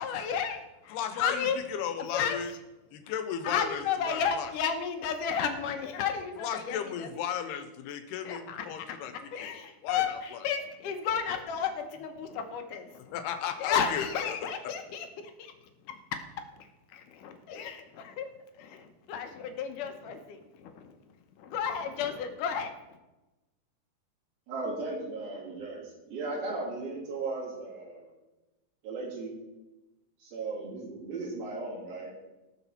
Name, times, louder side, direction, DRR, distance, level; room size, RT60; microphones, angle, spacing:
voice 1, 0.0-0.6 1.2-1.6 2.1-2.4 3.4-7.1 8.3-8.7 9.3-12.9 13.6-15.1 15.4-15.5 16.9-18.3 18.6-20.9 21.4-22.7, left 7 dB, 70° left, 6 dB, 2.2 m, -32 dB
voice 2, 0.9-2.5 2.9-4.5 6.4-9.3 9.8-10.4 13.1-14.5, left 8 dB, 90° left, 8 dB, 3.0 m, -35 dB
voice 3, 24.5-28.1 28.8-29.3 30.2-32.1, right 3 dB, 65° right, -6 dB, 5.2 m, -36 dB
18.5 x 6.5 x 4.3 m, 1.0 s
omnidirectional pair, 4.5 m